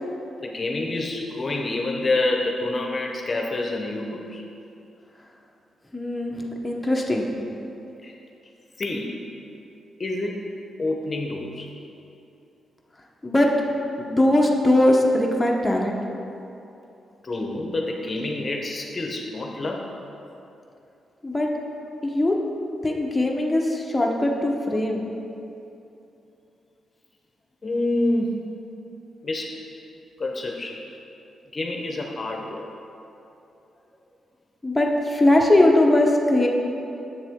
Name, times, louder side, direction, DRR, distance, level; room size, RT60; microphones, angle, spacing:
voice 1, 0.4-4.4 8.0-8.1 8.8-9.2 10.0-10.4 10.8-11.7 17.2-19.9 27.6-28.4 29.2-29.6 30.2-30.8 31.5-32.7, left 2 dB, 40° left, 1 dB, 0.8 m, -27 dB
voice 2, 5.9-7.3 13.2-13.5 14.0-16.0 21.2-21.5 22.0-22.3 22.8-25.1 34.6-36.5, left 1 dB, 10° left, -1 dB, 0.9 m, -20 dB
7.7 x 7.0 x 3.6 m, 2.8 s
cardioid pair, 65°, 0 cm